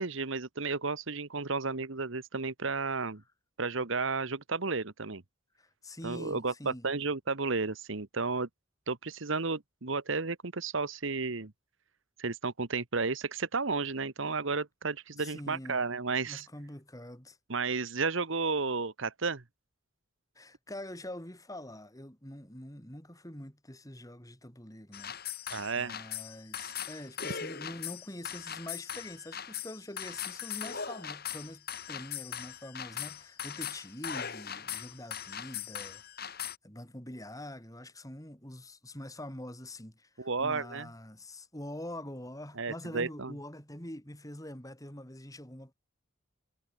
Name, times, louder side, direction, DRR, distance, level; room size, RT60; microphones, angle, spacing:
voice 1, 0.0-3.2 3.6-5.2 6.0-8.5 8.9-11.5 12.2-16.4 17.5-19.4 25.5-26.0 40.2-40.9 42.6-43.3, right 4 dB, 65° right, 1.2 m, -32 dB
voice 2, 5.5-6.9 15.2-15.8 16.2-17.4 20.3-25.2 25.8-36.0 36.3-45.7, left 1 dB, 15° left, 4.2 m, -45 dB
sound 1, 24.9-36.6, left 8 dB, 45° left, 4.8 m, -40 dB
head